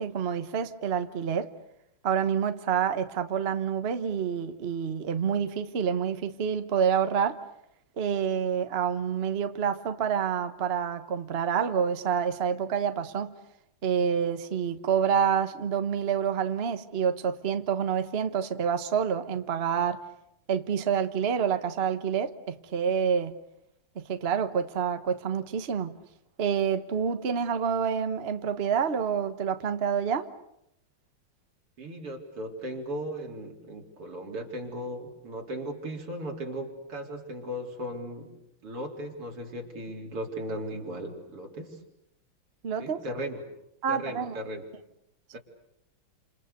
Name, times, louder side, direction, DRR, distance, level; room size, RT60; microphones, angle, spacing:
voice 1, 0.0-1.5 2.0-7.4 8.0-13.3 13.8-20.0 20.5-23.3 23.9-25.9 26.4-30.3 42.6-43.0 43.8-44.4, right 7 dB, 35° right, 1.1 m, -28 dB
voice 2, 31.8-38.3 38.6-41.8 42.8-43.4 43.9-44.6 45.3-45.4, equal, 90° right, 4.6 m, -37 dB
29.5 x 28.0 x 6.8 m
omnidirectional pair, 2.4 m